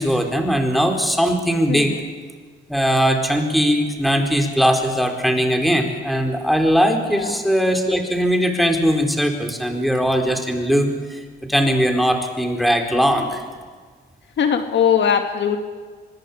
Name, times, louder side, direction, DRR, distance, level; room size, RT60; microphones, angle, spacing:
voice 1, 0.0-2.0 2.7-11.2 11.5-13.4, equal, ahead, 4 dB, 4.3 m, -19 dB
voice 2, 1.7-2.0 7.1-7.4 14.4-15.6, left 8 dB, 65° left, 6 dB, 2.4 m, -20 dB
25.0 x 20.5 x 8.7 m, 1.5 s
cardioid pair, 90°, 20 cm